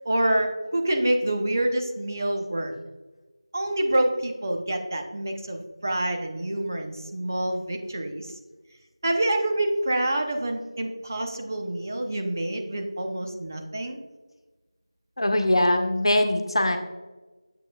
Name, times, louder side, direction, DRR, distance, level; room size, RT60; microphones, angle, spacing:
voice 1, 0.0-2.7 3.5-8.4 9.0-14.0, right 1 dB, 35° right, 3 dB, 0.7 m, -27 dB
voice 2, 15.2-16.8, left 1 dB, 70° left, 5 dB, 1.0 m, -22 dB
7.6 x 7.4 x 2.3 m, 1.2 s
figure-of-eight pair, 175°, 3 cm